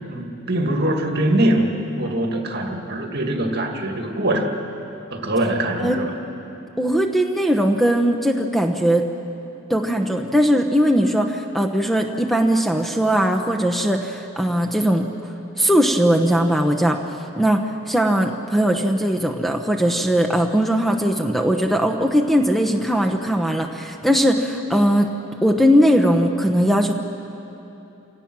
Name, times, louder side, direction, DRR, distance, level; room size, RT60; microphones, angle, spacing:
voice 1, 0.1-4.6 5.1-6.1, right 1 dB, 50° right, 3 dB, 2.1 m, -22 dB
voice 2, 6.8-9.0 9.7-15.1 15.6-17.0 17.4-25.1 25.4-26.9, equal, ahead, 4 dB, 0.9 m, -19 dB
29.0 x 17.5 x 6.1 m, 2.9 s
head